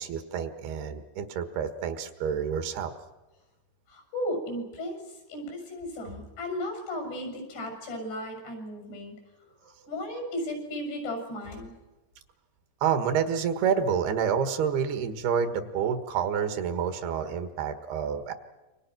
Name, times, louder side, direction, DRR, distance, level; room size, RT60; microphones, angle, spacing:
voice 1, 0.0-2.9 12.8-18.3, right 7 dB, 75° right, 9 dB, 3.3 m, -28 dB
voice 2, 3.9-9.1 9.6-11.7, left 1 dB, 85° left, 3 dB, 9.4 m, -35 dB
28.0 x 24.5 x 6.1 m, 1.1 s
omnidirectional pair, 4.8 m